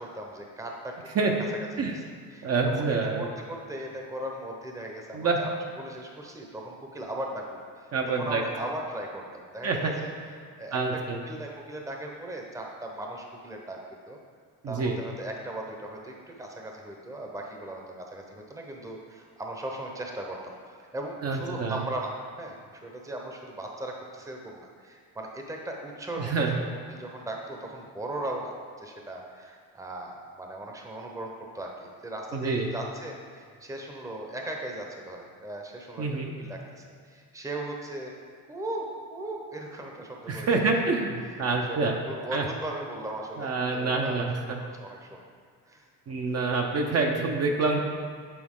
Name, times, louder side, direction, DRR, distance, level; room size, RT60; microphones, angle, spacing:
voice 1, 0.0-2.0 2.3-2.9 3.1-5.5 5.8-10.1 10.6-13.8 14.1-14.2 14.7-26.6 26.9-38.2 38.5-40.8 41.2-44.3 44.6-45.2 45.6-45.9 46.3-46.4, right 1 dB, 10° right, 1 dB, 0.8 m, -38 dB
voice 2, 2.4-3.3 5.1-5.4 7.9-8.4 9.6-9.9 10.7-11.2 14.6-15.0 21.2-21.8 26.2-26.5 32.3-32.7 36.0-36.3 40.3-41.9 42.3-42.4 43.4-44.6 46.1-47.8, right 4 dB, 45° right, 1 dB, 0.7 m, -27 dB
8.5 x 4.2 x 3.7 m, 2.1 s
cardioid pair, 110°, 36 cm